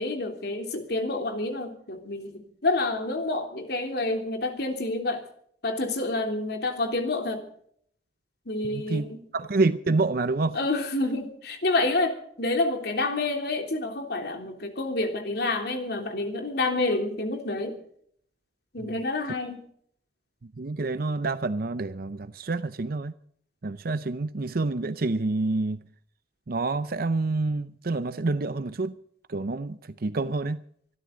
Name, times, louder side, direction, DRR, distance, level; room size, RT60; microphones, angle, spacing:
voice 1, 0.0-5.2 5.6-7.4 8.5-9.2 10.5-17.8 18.7-19.6, left 2 dB, 60° left, 3.3 m, -28 dB
voice 2, 8.6-9.1 9.3-10.6 18.8-19.0 20.6-23.1 23.6-25.8 26.5-29.0 29.3-30.6, right 3 dB, 55° right, 0.6 m, -28 dB
25.0 x 13.0 x 3.9 m
head